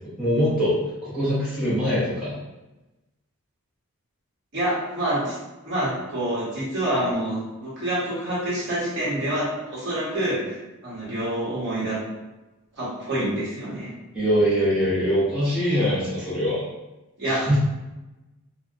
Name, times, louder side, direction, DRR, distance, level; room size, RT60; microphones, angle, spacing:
voice 1, 0.2-2.4 14.1-16.6 17.2-17.6, equal, 5° right, -12 dB, 0.7 m, -23 dB
voice 2, 4.5-5.4 5.6-10.5 10.8-12.0 12.8-13.9 17.2-17.6, right 1 dB, 50° right, -8 dB, 1.0 m, -27 dB
2.7 x 2.2 x 2.4 m, 1.0 s
head